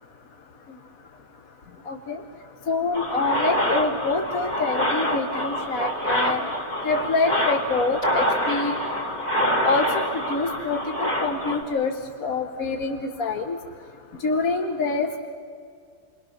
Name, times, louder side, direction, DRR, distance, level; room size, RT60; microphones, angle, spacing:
voice 1, 1.9-2.2 2.7-6.4 6.8-8.8 9.6-9.9 10.1-11.9 12.2-13.6 14.2-15.2, left 3 dB, 55° left, 5 dB, 1.5 m, -26 dB
sound 1, 2.9-11.6, equal, 25° left, 2.6 m, -26 dB
29.0 x 21.5 x 6.5 m, 2.3 s
omnidirectional pair, 1.8 m